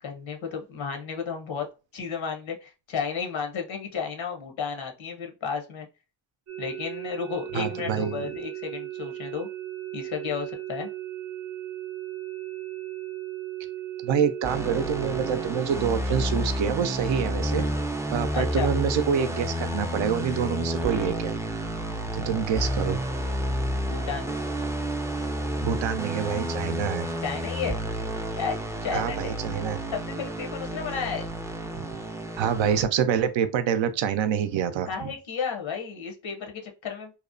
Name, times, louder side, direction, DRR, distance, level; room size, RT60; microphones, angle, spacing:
voice 1, 0.0-1.7 1.9-5.9 6.6-9.5 9.9-10.9 18.3-18.7 23.9-24.3 27.2-27.8 28.4-29.3 29.9-31.3 34.9-37.1, left 6 dB, 75° left, 0.8 m, -33 dB
sound 1, 6.5-15.5, right 14 dB, 35° right, 0.8 m, -36 dB
voice 2, 7.5-8.3 14.0-17.6 18.1-21.4 22.1-23.0 25.6-27.1 28.9-29.8 31.7-31.9 32.4-35.1, right 8 dB, 70° right, 0.5 m, -26 dB
sound 2, 14.4-32.8, equal, 5° right, 0.4 m, -30 dB
2.8 x 2.0 x 2.5 m
supercardioid pair, 40°, 47 cm